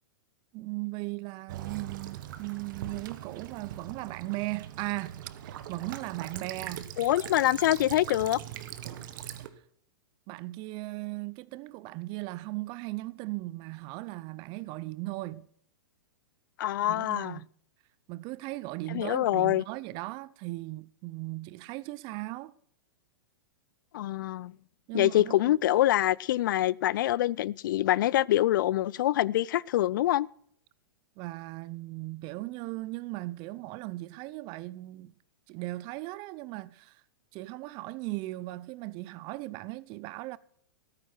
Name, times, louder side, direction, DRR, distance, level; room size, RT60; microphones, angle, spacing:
voice 1, 0.5-6.9 10.3-15.5 16.8-17.5 18.1-22.5 24.9-25.5 31.2-35.1 35.5-37.0 37.3-40.4, right 20 dB, 40° right, 0.7 m, -37 dB
Child speech kid speaking / Bird vocalization bird call bird song / Stream, 1.5-9.5, right 11 dB, 55° right, 1.5 m, -41 dB
voice 2, 7.0-8.4 16.6-17.4 18.9-19.6 23.9-24.5 24.9-30.3, left 14 dB, 60° left, 0.4 m, -25 dB
14.0 x 14.0 x 4.6 m
hypercardioid pair, 110°, 12 cm